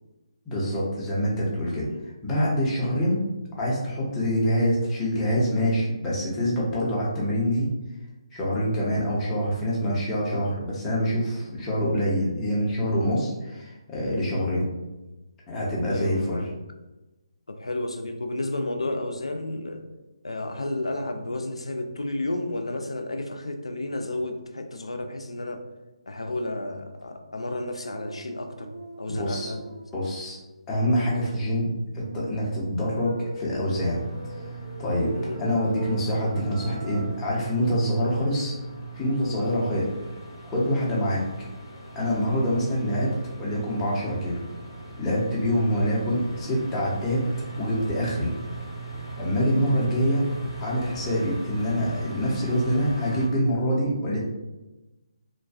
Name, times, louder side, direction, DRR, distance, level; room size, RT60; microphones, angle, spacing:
voice 1, 0.5-1.9 2.2-3.2 3.6-7.7 8.3-14.7 15.5-16.4 29.1-29.5 29.9-30.4 30.7-34.0 34.8-35.1 35.4-38.5 38.9-39.9 40.4-41.3 41.9-43.1 43.4-44.4 45.0-47.3 47.6-48.3 49.2-50.2 50.6-54.2, equal, 15° left, -6 dB, 0.6 m, -25 dB
voice 2, 15.8-16.5 17.5-19.8 20.2-25.6 26.1-28.7 29.0-29.6 35.1-35.4 39.5-39.8, left 2 dB, 80° left, 5 dB, 0.3 m, -32 dB
sound 1, 27.8-30.2 32.0-37.2, right 2 dB, 60° right, 0.4 m, -40 dB
sound 2, 33.6-53.3, right 3 dB, 50° left, 0.8 m, -39 dB
2.5 x 2.2 x 2.3 m, 1.1 s
figure-of-eight pair, 145°, 3 cm